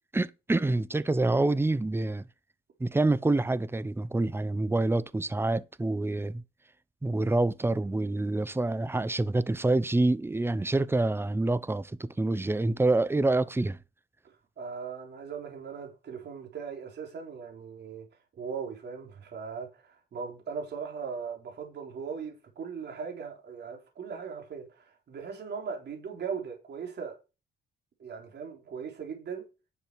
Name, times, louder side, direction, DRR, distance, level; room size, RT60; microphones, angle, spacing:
voice 1, 0.1-2.2 2.8-6.4 7.0-13.8, right 2 dB, 10° right, 0.8 m, -27 dB
voice 2, 14.2-18.1 18.4-27.2 28.0-29.5, right 6 dB, 60° right, 3.7 m, -39 dB
10.5 x 6.8 x 4.7 m
cardioid pair, 90°, 20 cm